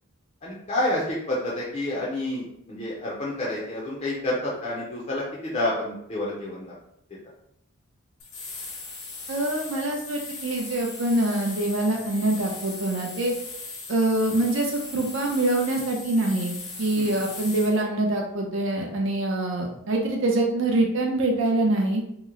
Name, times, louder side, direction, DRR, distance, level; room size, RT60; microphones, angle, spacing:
voice 1, 0.4-6.7 17.0-17.2, left 1 dB, 30° left, -5 dB, 0.5 m, -29 dB
sound 1, 8.2-17.8, left 3 dB, 70° left, 0.9 m, -39 dB
voice 2, 9.3-13.3 13.9-22.0, right 2 dB, 55° right, 0 dB, 0.6 m, -25 dB
2.9 x 2.0 x 3.7 m, 0.75 s
head